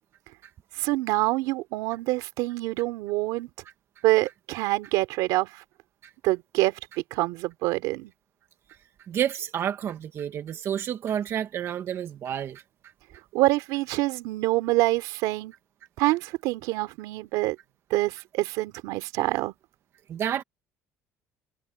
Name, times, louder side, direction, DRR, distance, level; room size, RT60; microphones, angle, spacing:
voice 1, 0.8-3.5 4.0-5.6 6.2-6.8 7.1-8.1 13.3-15.5 16.0-17.6 17.9-19.5, right 19 dB, 85° right, 3.3 m, -26 dB
voice 2, 9.1-12.6 20.1-20.4, right 9 dB, 45° right, 1.5 m, -29 dB
cardioid pair, 135°, 6 cm